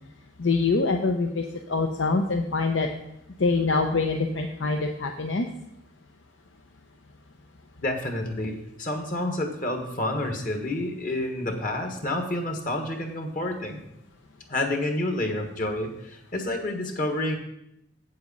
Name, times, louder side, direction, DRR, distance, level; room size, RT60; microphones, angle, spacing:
voice 1, 0.4-2.9 3.4-5.5, left 3 dB, 90° left, 4 dB, 0.7 m, -25 dB
voice 2, 7.8-13.8 14.5-17.4, left 1 dB, 45° left, 4 dB, 1.5 m, -29 dB
8.2 x 7.8 x 5.4 m, 0.81 s
head